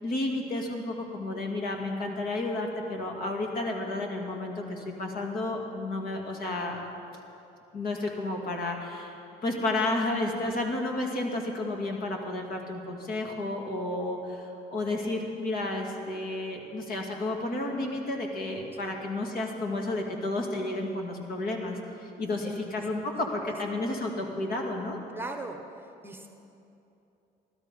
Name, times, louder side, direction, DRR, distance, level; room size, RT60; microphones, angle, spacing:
voice 1, 0.0-6.8 7.7-9.2 9.4-25.0, left 2 dB, 60° left, 1 dB, 2.3 m, -32 dB
voice 2, 25.1-25.6 26.0-26.3, right 3 dB, 15° right, 4 dB, 1.1 m, -38 dB
17.0 x 12.5 x 5.3 m, 2.8 s
cardioid pair, 110°, 17 cm